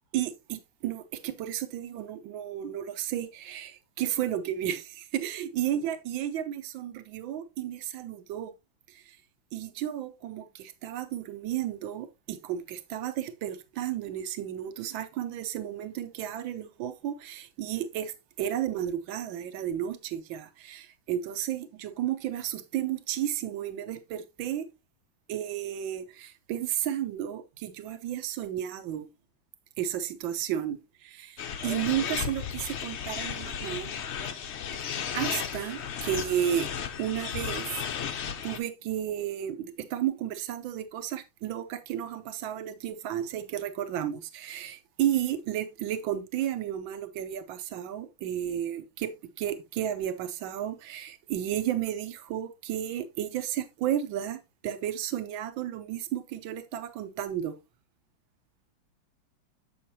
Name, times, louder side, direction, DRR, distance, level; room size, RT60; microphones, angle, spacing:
voice 1, 0.1-8.5 8.9-9.2 9.5-24.7 25.3-29.1 29.8-33.9 35.1-36.7 37.0-57.6, right 11 dB, 80° right, 1.5 m, -33 dB
sound 1, 31.4-38.6, left 8 dB, 80° left, 0.6 m, -34 dB
7.8 x 6.6 x 2.8 m
omnidirectional pair, 2.1 m